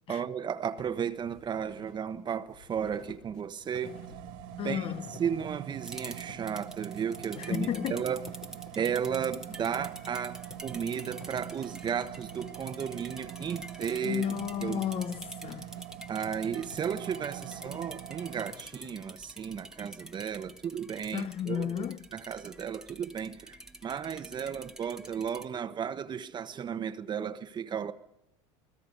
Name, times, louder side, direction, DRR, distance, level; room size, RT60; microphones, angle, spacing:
voice 1, 0.1-4.0 4.6-4.9 5.2-8.2 8.7-14.3 14.6-14.8 16.1-21.8 22.1-27.9, right 7 dB, 30° right, 1.1 m, -34 dB
sound 1, 0.8-19.5, left 6 dB, 80° left, 4.6 m, -54 dB
sound 2, 3.8-18.5, right 14 dB, 65° right, 2.2 m, -44 dB
voice 2, 4.6-5.1 7.4-8.1 14.0-15.7 21.1-22.0, left 10 dB, 35° left, 0.9 m, -33 dB
sound 3, 5.8-25.5, right 1 dB, 5° right, 1.3 m, -48 dB
29.0 x 20.0 x 5.3 m
supercardioid pair, 125°, 15 cm